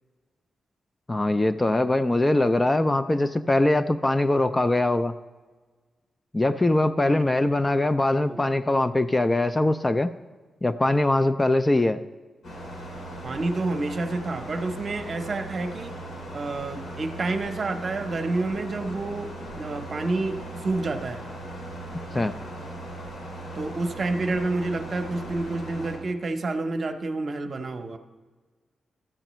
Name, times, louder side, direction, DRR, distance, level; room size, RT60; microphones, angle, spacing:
voice 1, 1.1-5.1 6.3-10.1 10.6-12.0 22.1-22.3, left 2 dB, 20° left, 10 dB, 0.3 m, -22 dB
sound 1, 12.4-26.0, right 1 dB, 75° left, 3.3 m, -38 dB
voice 2, 13.2-15.9 16.3-21.2 23.6-28.0, right 2 dB, 45° right, 6 dB, 0.7 m, -29 dB
13.0 x 7.6 x 3.0 m, 1.4 s
cardioid pair, 105°, 0 cm